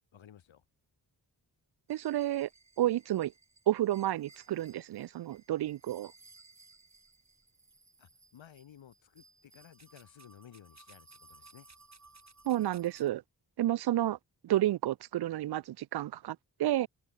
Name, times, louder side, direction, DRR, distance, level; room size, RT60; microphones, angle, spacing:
voice 1, 0.1-0.6 8.0-11.7, left 9 dB, 90° left, 3.3 m, -56 dB
sound 1, 1.9-13.1, right 3 dB, 35° right, 5.5 m, -60 dB
voice 2, 1.9-2.5 2.8-3.3 3.7-6.1 12.5-13.2 13.6-14.2 14.4-16.9, right 13 dB, 60° right, 0.5 m, -30 dB
open air
cardioid pair, 45°, 45 cm